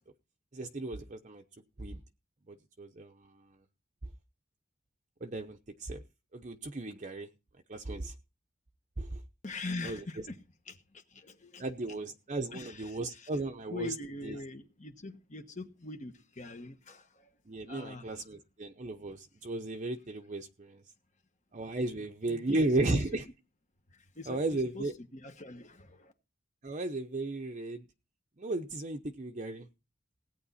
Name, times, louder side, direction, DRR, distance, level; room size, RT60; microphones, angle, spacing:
voice 1, 0.5-1.4 1.8-2.0 2.5-3.3 5.2-6.0 6.3-7.3 7.7-8.1 9.0-9.2 9.8-10.0 11.6-13.9 14.2-14.4 17.5-20.8 21.5-23.2 24.3-24.9 26.6-27.8 28.4-29.7, right 2 dB, 40° right, 0.8 m, -35 dB
voice 2, 9.4-11.7 12.5-13.3 13.7-18.2 21.9-22.6 22.9-23.1 23.9-26.1, left 2 dB, 40° left, 1.2 m, -43 dB
17.0 x 9.3 x 4.2 m
head